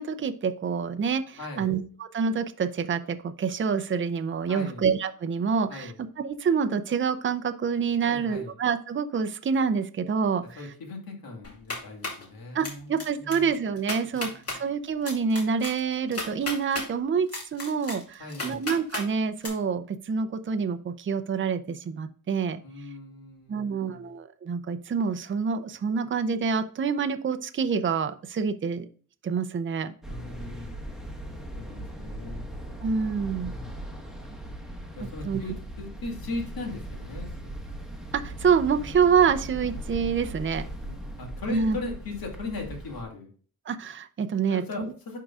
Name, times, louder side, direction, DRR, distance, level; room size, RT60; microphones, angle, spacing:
voice 1, 0.0-5.9 6.2-10.4 12.5-22.6 23.5-28.9 29.2-29.9 32.8-33.5 35.3-35.4 38.1-40.7 41.5-41.8 43.7-44.6, right 6 dB, 35° right, 9 dB, 0.6 m, -27 dB
voice 2, 1.4-1.7 4.5-4.8 5.7-6.0 8.0-8.6 10.6-13.5 14.1-14.6 18.2-18.6 22.6-24.1 30.1-30.8 31.6-32.5 33.3-33.7 35.0-37.5 40.9-43.3 44.5-45.2, left 3 dB, 75° left, 1 dB, 2.3 m, -39 dB
sound 1, 11.4-12.2 12.6-13.0 13.3-13.4 13.8-14.6 15.1-16.9 17.3-19.1 19.4-19.5, left 2 dB, 40° left, 2.4 m, -34 dB
sound 2, 30.0-43.0, right 1 dB, ahead, 1.1 m, -39 dB
11.0 x 3.8 x 2.4 m, 0.42 s
wide cardioid pair, 125°, 36 cm